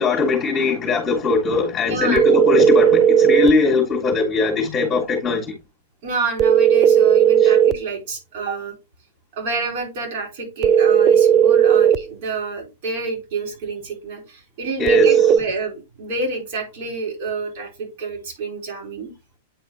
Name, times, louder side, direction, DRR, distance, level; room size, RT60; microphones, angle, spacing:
voice 1, 0.0-5.5 7.4-7.5 14.8-15.3, left 4 dB, 25° left, 1.7 m, -20 dB
voice 2, 1.8-2.2 6.0-8.7 9.4-19.1, right 4 dB, 55° right, 3.1 m, -28 dB
sound 1, 2.2-3.6 6.4-7.8 10.6-12.0 14.9-15.4, right 9 dB, 30° right, 0.3 m, -14 dB
9.0 x 4.2 x 2.8 m
figure-of-eight pair, 100°, 0 cm